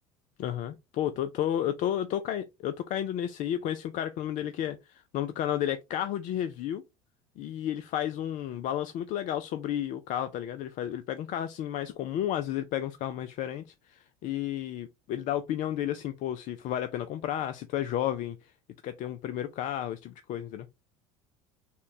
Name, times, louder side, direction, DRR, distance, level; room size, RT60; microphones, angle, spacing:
voice 1, 0.4-6.8 7.4-18.5 18.8-20.7, left 11 dB, 50° left, 0.4 m, -32 dB
3.7 x 2.2 x 3.9 m
hypercardioid pair, 70°, 17 cm